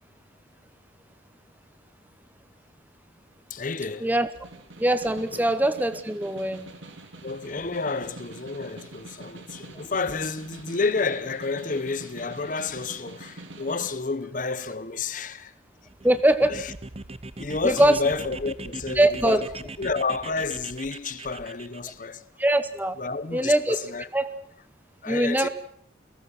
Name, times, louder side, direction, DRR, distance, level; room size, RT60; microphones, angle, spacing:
voice 1, 3.5-4.1 5.3-5.4 7.2-15.5 16.5-16.7 17.4-19.4 19.8-22.2 23.0-24.1 25.0-25.5, left 4 dB, 40° left, 0.8 m, -30 dB
Snare drum, 4.4-14.0, right 2 dB, 80° right, 2.9 m, -45 dB
voice 2, 4.8-6.7 16.0-16.5 17.6-18.0 19.0-19.4 22.4-23.0 23.3-23.8 24.1-24.3 25.1-25.5, right 1 dB, 10° right, 1.0 m, -22 dB
sound 1, 15.9-21.9, right 2 dB, 30° right, 0.8 m, -40 dB
29.0 x 18.0 x 6.1 m
head